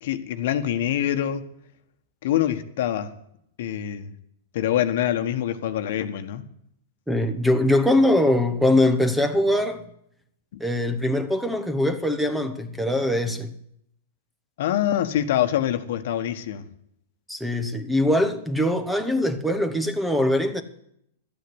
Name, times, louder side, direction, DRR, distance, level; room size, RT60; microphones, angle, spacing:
voice 1, 0.0-1.4 2.2-3.1 3.6-4.1 4.5-6.4 14.6-16.7, left 11 dB, 65° left, 1.4 m, -25 dB
voice 2, 7.1-9.8 10.6-13.5 17.3-20.6, left 1 dB, 5° right, 1.1 m, -22 dB
13.0 x 9.0 x 8.0 m
hypercardioid pair, 145°, 0 cm